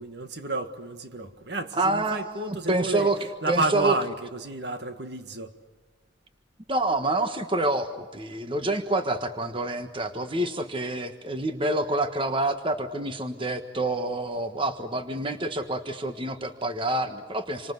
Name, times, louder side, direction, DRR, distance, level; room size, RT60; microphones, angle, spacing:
voice 1, 0.0-3.1 3.4-5.5, right 2 dB, 60° right, 1.7 m, -30 dB
voice 2, 1.7-3.2 3.5-3.9 6.7-17.7, right 2 dB, 25° right, 1.4 m, -27 dB
29.0 x 25.5 x 8.0 m
head